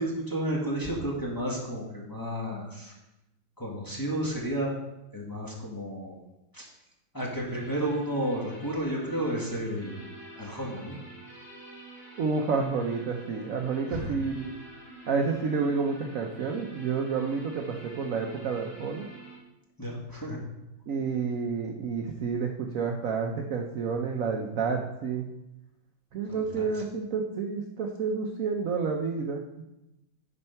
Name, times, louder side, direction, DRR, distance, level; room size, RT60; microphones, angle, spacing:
voice 1, 0.0-2.9 3.6-4.7 5.1-6.1 6.5-6.7 7.1-10.0 10.4-10.9 13.9-14.2 19.8-20.4 26.3-26.8, right 1 dB, 10° left, -4 dB, 1.4 m, -32 dB
sound 1, 7.3-19.3, right 2 dB, 50° left, 3.0 m, -48 dB
voice 2, 12.2-14.5 15.1-19.1 20.9-25.3 26.1-29.4, right 5 dB, 60° right, 2 dB, 0.9 m, -29 dB
9.7 x 4.4 x 5.7 m, 0.92 s
omnidirectional pair, 2.1 m